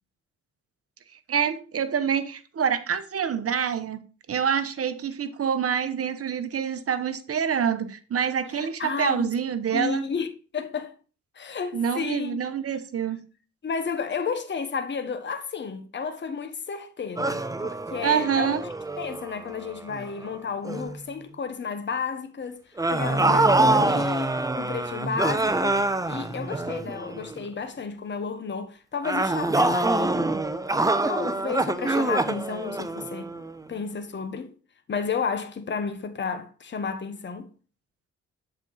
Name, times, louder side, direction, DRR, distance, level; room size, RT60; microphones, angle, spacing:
voice 1, 1.3-10.1 11.7-13.2 18.0-18.6, right 7 dB, 50° right, 0.9 m, -26 dB
voice 2, 8.8-9.3 9.7-10.3 10.5-10.9 11.4-12.4 13.6-18.5 19.0-22.6 22.9-30.1 31.0-33.3 33.7-34.5 34.9-37.5, left 5 dB, 40° left, 1.0 m, -32 dB
sound 1, 17.2-20.3 20.6-21.0 22.8-27.4 29.0-33.6, right 2 dB, 10° right, 0.7 m, -25 dB
7.4 x 4.5 x 3.9 m
supercardioid pair, 50°, 29 cm